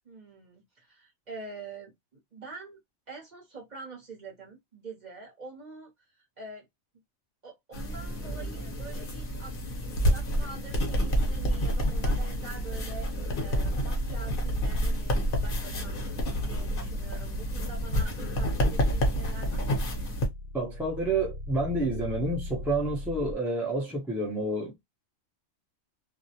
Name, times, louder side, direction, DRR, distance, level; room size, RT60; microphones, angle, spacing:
voice 1, 0.0-2.8 3.1-6.7 7.4-9.6 9.9-15.2 15.4-16.0 16.5-19.9, right 3 dB, 40° right, 0.8 m, -45 dB
sound 1, 7.7-20.3, equal, 50° left, 0.8 m, -29 dB
sound 2, 10.6-23.3, left 1 dB, 75° left, 1.0 m, -39 dB
voice 2, 20.5-24.8, right 2 dB, ahead, 0.4 m, -29 dB
2.4 x 2.0 x 2.7 m
omnidirectional pair, 1.4 m